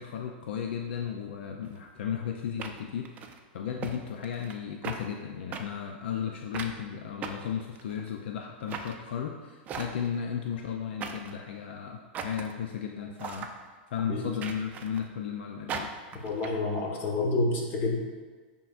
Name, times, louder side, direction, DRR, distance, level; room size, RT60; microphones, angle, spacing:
voice 1, 0.0-13.5 13.9-15.9, left 8 dB, 75° left, 3 dB, 0.5 m, -35 dB
sound 1, 1.6-1.8 2.6-3.4 3.8-4.0 4.2-4.6 4.8-5.0 5.5-5.6 6.5-6.8 7.2-8.1 8.7-8.9 9.7-10.2 11.0-11.4 12.1-12.5 13.2-13.5 14.4-15.1 15.7-16.5, right 6 dB, 25° right, 0.5 m, -38 dB
voice 2, 16.2-18.0, left 2 dB, 40° left, 0 dB, 1.4 m, -28 dB
10.5 x 3.7 x 2.5 m, 1.5 s
supercardioid pair, 135°, 6 cm